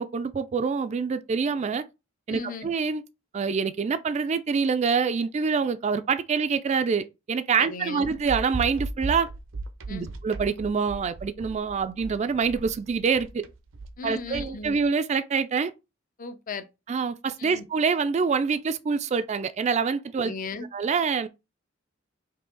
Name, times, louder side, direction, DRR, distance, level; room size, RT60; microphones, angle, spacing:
voice 1, 0.0-1.8 2.3-3.0 3.3-9.3 9.9-13.4 14.0-15.7 16.9-20.3 20.7-21.3, right 5 dB, 35° right, 0.3 m, -26 dB
voice 2, 2.3-2.7 7.6-8.2 9.9-10.1 14.0-14.8 16.2-16.7 17.4-17.7 20.2-20.7, left 4 dB, 45° left, 0.6 m, -36 dB
sound 1, 8.0-14.8, right 3 dB, 80° right, 0.6 m, -36 dB
4.7 x 2.8 x 3.8 m
head